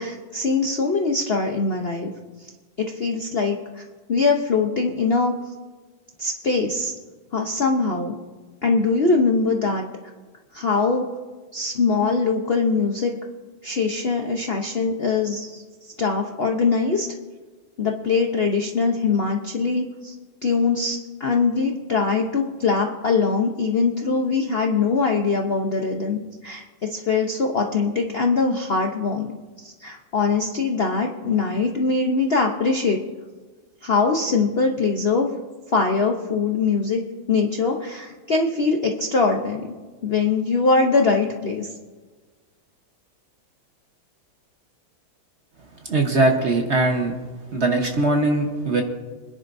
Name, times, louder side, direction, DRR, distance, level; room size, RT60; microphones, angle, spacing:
voice 1, 0.0-2.1 2.8-3.8 4.1-5.3 6.2-6.9 7.3-8.1 8.6-9.9 10.5-11.1 11.5-13.1 13.6-17.1 17.8-20.1 20.4-29.3 29.6-33.0 33.8-35.3 35.7-37.0 37.3-39.8 40.0-41.7, left 4 dB, 50° left, 2 dB, 0.7 m, -22 dB
voice 2, 45.9-47.1 47.5-48.8, right 2 dB, 40° right, 2 dB, 1.2 m, -20 dB
26.0 x 10.5 x 2.6 m, 1.3 s
omnidirectional pair, 2.1 m